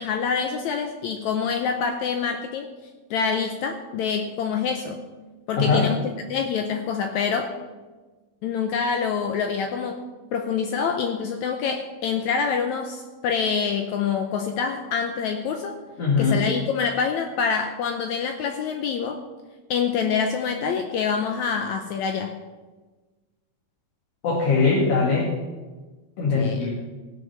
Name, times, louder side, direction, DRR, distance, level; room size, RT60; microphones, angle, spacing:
voice 1, 0.0-2.7 3.1-5.0 5.5-7.5 8.4-10.0 10.3-15.8 16.2-19.2 19.7-22.3 26.4-26.6, left 6 dB, 80° left, 5 dB, 1.7 m, -26 dB
voice 2, 5.6-5.9 16.0-16.5 24.2-25.3 26.2-26.7, left 4 dB, 50° left, -4 dB, 2.7 m, -21 dB
16.5 x 6.4 x 5.9 m, 1.3 s
omnidirectional pair, 4.1 m